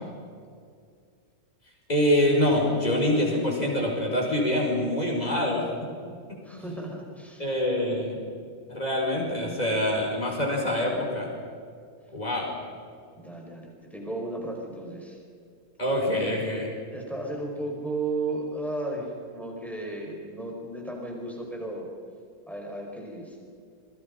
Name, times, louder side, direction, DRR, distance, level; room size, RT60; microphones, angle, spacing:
voice 1, 1.9-5.7 7.4-8.2 8.7-11.3 12.1-12.5 15.8-16.7, left 1 dB, 25° left, -1 dB, 5.4 m, -25 dB
voice 2, 6.4-7.9 13.1-15.2 16.9-21.9 22.5-23.4, right 2 dB, ahead, -1 dB, 5.4 m, -34 dB
29.5 x 22.5 x 5.5 m, 2.2 s
omnidirectional pair, 1.6 m